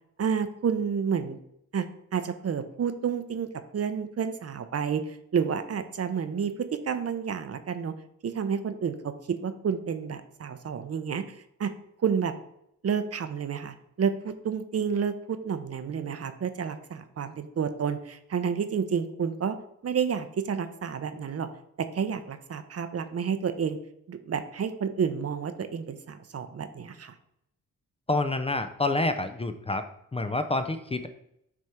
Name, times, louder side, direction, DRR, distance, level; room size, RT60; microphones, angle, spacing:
voice 1, 0.2-1.4 1.7-1.9 2.1-7.9 8.2-9.1 9.4-11.7 12.0-12.3 12.8-19.6 19.8-21.5 21.9-23.8 24.1-27.1, right 7 dB, 45° right, 10 dB, 0.7 m, -30 dB
voice 2, 28.1-29.9 30.1-31.1, left 2 dB, 20° left, 8 dB, 0.5 m, -28 dB
6.2 x 3.5 x 4.3 m, 0.79 s
cardioid pair, 70°, 33 cm